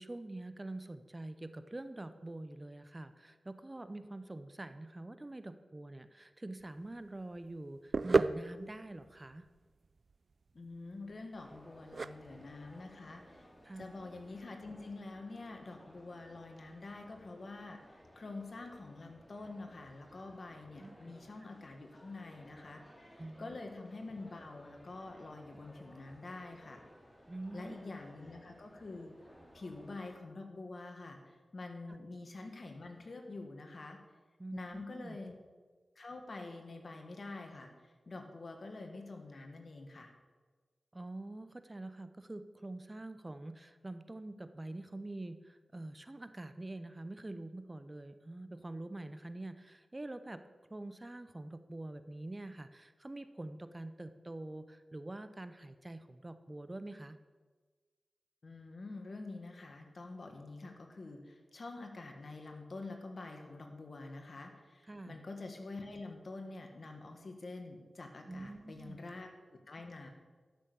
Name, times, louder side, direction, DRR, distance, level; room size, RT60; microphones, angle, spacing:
voice 1, 0.0-9.5 13.6-13.9 20.8-21.0 23.2-23.6 27.3-27.8 31.9-32.0 34.4-35.2 40.9-50.4 50.7-57.2 64.9-65.2 68.3-69.0, right 2 dB, 30° right, 11 dB, 0.7 m, -45 dB
sound 1, 6.6-14.5, right 3 dB, 60° right, 0.4 m, -37 dB
voice 2, 10.5-13.4 13.8-26.8 27.5-29.1 29.5-34.0 34.5-35.4 36.0-37.7 38.1-40.1 58.4-69.3 69.7-70.1, left 3 dB, 60° left, 4 dB, 1.8 m, -47 dB
sound 2, 11.4-30.2, equal, 10° left, 2.7 m, -59 dB
12.5 x 6.4 x 6.9 m, 1.4 s
cardioid pair, 50°, 0 cm